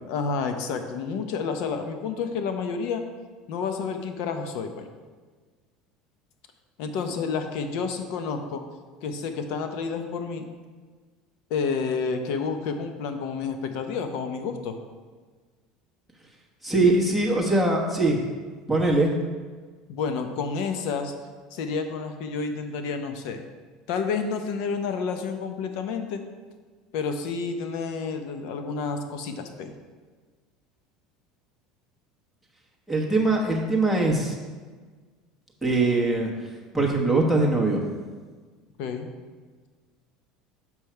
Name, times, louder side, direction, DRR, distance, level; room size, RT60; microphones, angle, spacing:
voice 1, 0.1-3.0 3.5-4.9 6.8-8.6 9.0-10.5 11.5-14.8 19.9-21.1 21.5-23.4 23.9-26.2 26.9-29.7 38.8-39.1, left 5 dB, 65° left, 6 dB, 0.8 m, -30 dB
voice 2, 16.6-18.2 18.7-19.1 32.9-34.3 35.6-36.3 36.7-37.8, right 2 dB, ahead, -1 dB, 1.2 m, -22 dB
6.2 x 5.4 x 4.5 m, 1.4 s
supercardioid pair, 140°, 0 cm